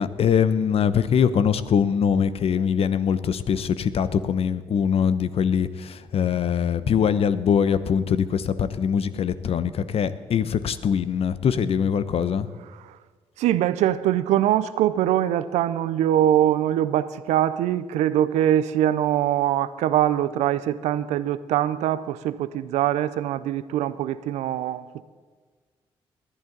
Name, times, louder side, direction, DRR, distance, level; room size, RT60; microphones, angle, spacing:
voice 1, 0.0-12.5, left 7 dB, 55° left, 0.9 m, -22 dB
voice 2, 13.4-25.0, right 12 dB, 75° right, 0.6 m, -23 dB
20.0 x 11.5 x 4.0 m
hypercardioid pair, 50°, 12 cm